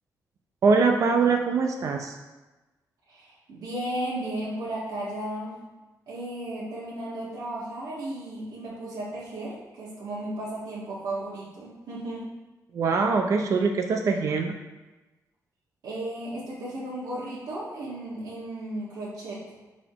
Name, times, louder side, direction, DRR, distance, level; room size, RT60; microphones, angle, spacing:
voice 1, 0.6-2.2 12.7-14.5, right 4 dB, 50° right, 3 dB, 0.5 m, -23 dB
voice 2, 3.1-5.6 6.1-12.3 15.8-19.4, right 1 dB, 75° right, -8 dB, 1.6 m, -34 dB
11.5 x 4.1 x 3.0 m, 1.1 s
wide cardioid pair, 160°, 7 cm